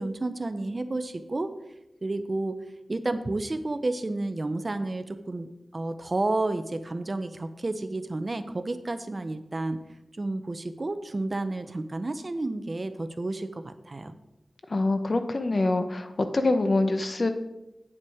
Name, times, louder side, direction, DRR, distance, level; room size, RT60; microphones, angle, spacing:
voice 1, 0.0-1.5 2.0-2.6 2.9-9.8 10.1-14.1, right 2 dB, 40° right, 10 dB, 0.6 m, -31 dB
voice 2, 14.7-17.3, left 2 dB, 50° left, 8 dB, 0.8 m, -25 dB
8.9 x 7.2 x 4.8 m, 0.93 s
wide cardioid pair, 95°, 0 cm